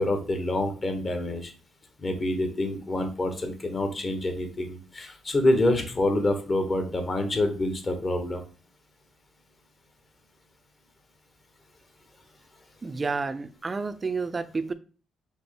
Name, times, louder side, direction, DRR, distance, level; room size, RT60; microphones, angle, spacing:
voice 1, 0.0-1.5 2.0-8.4, left 1 dB, 35° left, 1.0 m, -27 dB
voice 2, 12.8-14.7, right 4 dB, 30° right, 0.4 m, -30 dB
5.2 x 2.1 x 4.6 m
cardioid pair, 90°, 0 cm